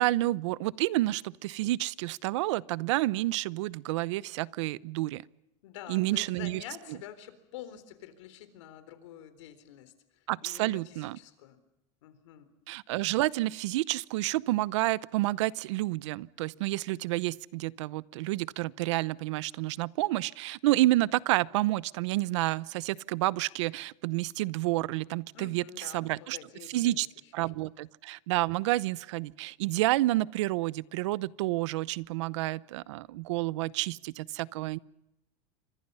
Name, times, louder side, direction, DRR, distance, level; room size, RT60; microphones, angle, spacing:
voice 1, 0.0-5.2 5.9-6.6 10.3-11.2 12.7-26.4 26.7-27.1 27.3-34.8, right 18 dB, 80° right, 21 dB, 0.8 m, -29 dB
voice 2, 5.6-11.6 12.0-12.5 25.3-26.9, left 11 dB, 85° left, 11 dB, 3.9 m, -47 dB
28.5 x 25.5 x 5.6 m, 0.86 s
supercardioid pair, 170°, 15 cm